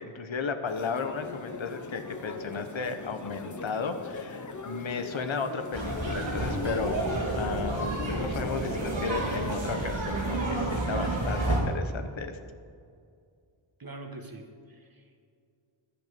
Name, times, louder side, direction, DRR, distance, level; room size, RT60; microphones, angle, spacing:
voice 1, 0.0-7.0 7.3-12.4, left 5 dB, 65° left, 8 dB, 1.1 m, -34 dB
sound 1, 0.7-9.6, left 3 dB, 35° left, 1.0 m, -39 dB
sound 2, 5.7-11.6, right 2 dB, 60° right, 3.0 m, -30 dB
voice 2, 13.8-15.2, right 2 dB, 45° right, 3 dB, 1.8 m, -44 dB
10.5 x 8.4 x 6.8 m, 2.3 s
wide cardioid pair, 65°, 49 cm